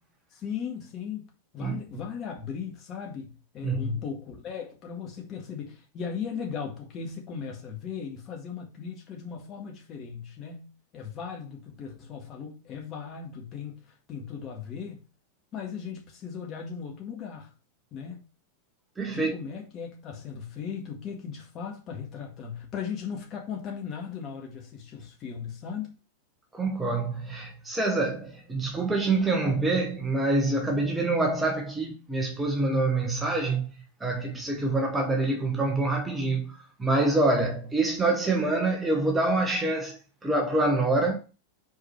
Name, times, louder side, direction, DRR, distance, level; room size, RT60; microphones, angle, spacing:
voice 1, 0.3-1.3 1.5-15.0 15.5-17.5 17.9-18.2 19.1-25.9, left 7 dB, 30° left, 1.9 m, -37 dB
voice 2, 3.6-4.0 19.0-19.4 26.5-33.7 34.0-41.2, right 2 dB, 10° right, 1.3 m, -26 dB
5.1 x 4.7 x 4.5 m
figure-of-eight pair, 90°, 0 cm